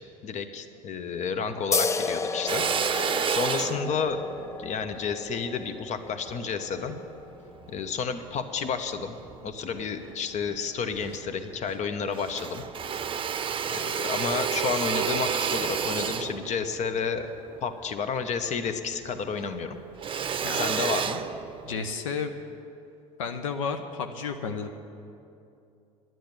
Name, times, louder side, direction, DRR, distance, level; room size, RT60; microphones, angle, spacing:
voice 1, 0.2-4.2 4.6-6.9 7.7-9.2 9.4-12.6 13.7-17.3 17.6-19.8 20.5-21.2, left 6 dB, 45° left, 9 dB, 1.0 m, -31 dB
sound 1, 1.7-8.8, left 4 dB, 20° left, 0.4 m, -34 dB
Drill, 2.5-7.0 7.6-8.7 9.2-10.1 10.5-10.6 10.9-11.9 12.1-18.8 19.1-21.9, right 7 dB, 30° right, 0.7 m, -31 dB
voice 2, 20.4-20.9 21.6-22.3 23.2-24.7, left 5 dB, 85° left, 6 dB, 0.7 m, -32 dB
10.5 x 9.2 x 8.4 m, 2.6 s
hypercardioid pair, 75°, 16 cm